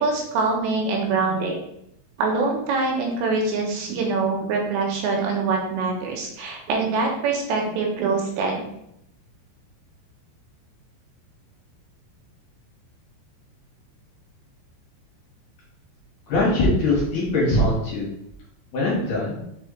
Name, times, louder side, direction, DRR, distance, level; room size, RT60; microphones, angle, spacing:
voice 1, 0.0-1.6 2.2-8.6, right 4 dB, 80° right, 1 dB, 3.1 m, -24 dB
voice 2, 16.3-18.1 18.7-19.4, left 1 dB, 55° left, -6 dB, 2.8 m, -21 dB
6.3 x 4.8 x 3.2 m, 0.77 s
omnidirectional pair, 5.1 m